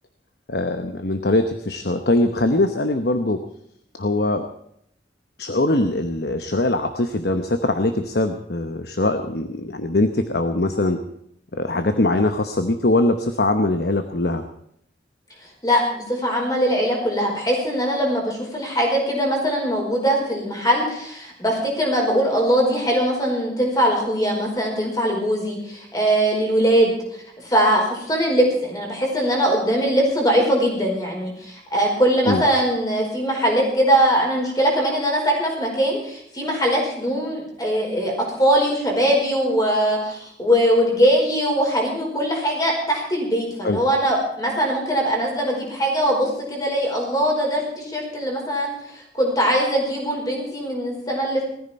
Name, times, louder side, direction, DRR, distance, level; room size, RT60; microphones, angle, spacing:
voice 1, 0.5-3.4 4.0-4.4 5.4-11.0 11.5-14.4 32.2-32.4 43.6-43.8, left 2 dB, 60° left, 8 dB, 1.0 m, -22 dB
voice 2, 15.6-27.0 27.4-38.1 38.4-51.4, equal, 20° left, 0 dB, 4.9 m, -21 dB
19.5 x 14.0 x 4.4 m, 0.72 s
head